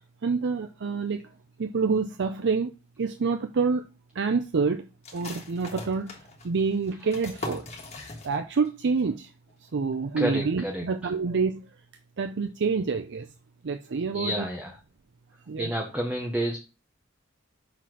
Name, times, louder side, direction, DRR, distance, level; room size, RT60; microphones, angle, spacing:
voice 1, 0.2-1.2 1.6-2.7 3.0-3.8 4.1-4.9 5.1-6.2 6.4-7.7 8.2-9.3 9.7-11.6 12.2-13.3 13.6-14.4 15.5-15.7, right 4 dB, 60° right, 7 dB, 0.5 m, -27 dB
sound 1, 5.0-8.7 8.9-9.0 9.5-9.9, left 2 dB, 35° left, 1.5 m, -40 dB
voice 2, 10.2-11.1 14.1-14.8 15.6-16.6, equal, 5° right, 2 dB, 0.8 m, -30 dB
6.0 x 4.3 x 4.7 m, 0.31 s
head